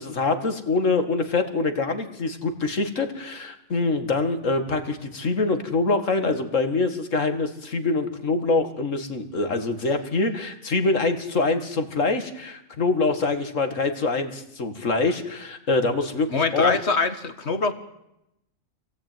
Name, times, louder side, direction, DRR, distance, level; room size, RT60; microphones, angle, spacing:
voice 1, 0.0-16.8, left 3 dB, 70° left, 8 dB, 2.4 m, -24 dB
voice 2, 16.3-17.7, left 4 dB, 55° left, 10 dB, 2.1 m, -24 dB
26.5 x 17.5 x 9.3 m, 0.84 s
omnidirectional pair, 1.4 m